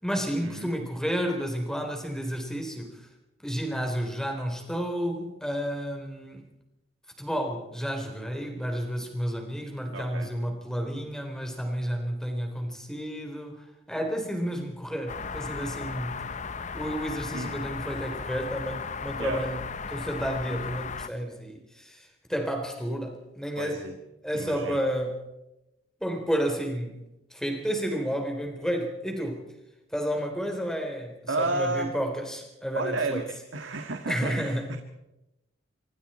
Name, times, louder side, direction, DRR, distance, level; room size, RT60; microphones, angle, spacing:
voice 1, 0.0-3.1 3.4-6.4 7.2-16.2 16.7-19.6 19.9-23.9 24.2-25.2 26.0-27.0 27.3-29.4 29.9-33.3 34.1-34.7, equal, 5° left, 3 dB, 3.7 m, -31 dB
voice 2, 9.9-10.3 17.3-17.6 19.2-19.4 23.6-24.0 24.3-24.8 31.3-31.9 32.7-33.2 33.5-34.8, right 3 dB, 80° right, 5 dB, 1.8 m, -32 dB
sound 1, 15.1-21.1, left 5 dB, 40° left, 0.8 m, -36 dB
26.0 x 24.0 x 4.4 m, 0.95 s
head